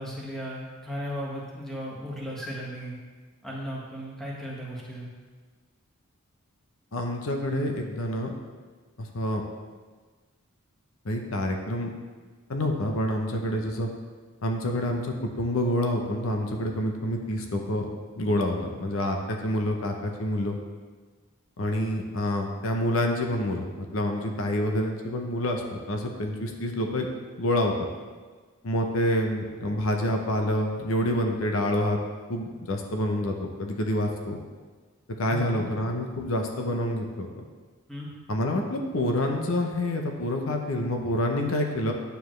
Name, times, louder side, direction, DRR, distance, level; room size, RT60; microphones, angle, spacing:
voice 1, 0.0-3.0 3.4-5.1 35.3-35.7 37.9-38.1, equal, ahead, -6 dB, 1.5 m, -35 dB
voice 2, 6.9-8.3 9.0-9.4 11.0-11.9 12.5-13.9 14.4-17.9 18.2-20.6 21.6-27.1 27.4-27.9 28.6-32.0 32.3-34.4 35.2-37.3 38.3-41.9, left 1 dB, 70° left, 3 dB, 0.8 m, -27 dB
9.2 x 7.0 x 3.2 m, 1.4 s
head